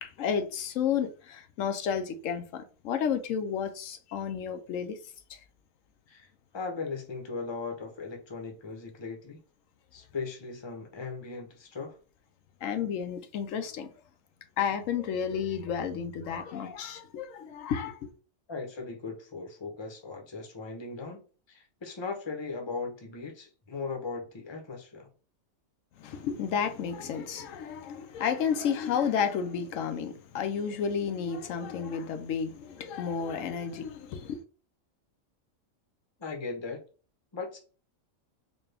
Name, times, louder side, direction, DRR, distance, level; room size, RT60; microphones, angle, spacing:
voice 1, 0.0-5.0 5.3-5.4 12.6-13.9 14.6-18.1 26.0-34.4, left 7 dB, 75° left, 0.9 m, -31 dB
voice 2, 6.1-9.4 9.9-11.9 18.5-21.2 21.5-25.1 36.2-36.8 37.3-37.6, left 4 dB, 25° left, 0.7 m, -38 dB
4.1 x 2.2 x 3.3 m
omnidirectional pair, 1.4 m